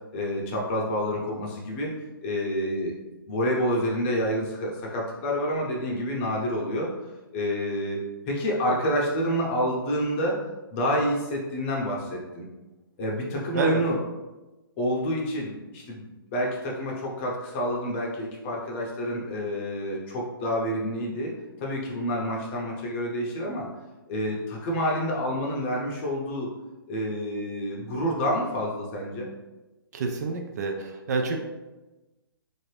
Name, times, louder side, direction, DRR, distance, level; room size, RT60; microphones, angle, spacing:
voice 1, 0.1-1.9 2.2-3.0 3.2-6.9 7.3-10.4 10.7-12.4 13.0-14.0 14.8-21.3 21.6-23.7 24.1-26.5 26.9-29.3, equal, 30° left, -2 dB, 0.7 m, -28 dB
voice 2, 29.9-31.4, right 3 dB, 45° right, 3 dB, 0.4 m, -27 dB
2.7 x 2.5 x 3.2 m, 1.1 s
hypercardioid pair, 150°, 13 cm